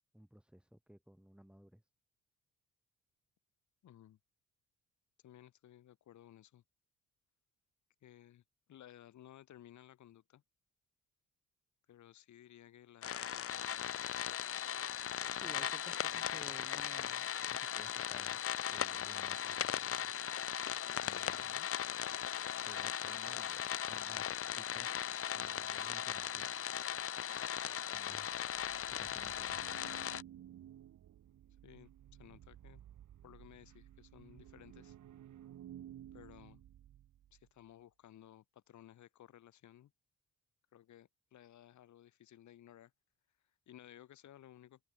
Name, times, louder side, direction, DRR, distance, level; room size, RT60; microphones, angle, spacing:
voice 1, 0.1-1.9 15.3-18.4 18.7-20.1 21.0-21.6 22.6-26.6 27.9-28.6 28.9-29.6, equal, 5° right, 6.8 m, -58 dB
voice 2, 3.8-4.2 5.2-6.6 8.0-8.4 8.7-10.4 11.9-13.9 16.1-16.5 21.4-21.7 31.6-31.9 32.2-32.8 33.2-35.0 36.1-36.6 37.3-39.9 40.7-42.9 43.7-44.8, left 12 dB, 70° left, 3.9 m, -58 dB
sound 1, 13.0-30.2, left 9 dB, 50° left, 0.9 m, -38 dB
sound 2, 28.3-37.5, right 11 dB, 70° right, 5.8 m, -55 dB
cardioid pair, 90°, 30 cm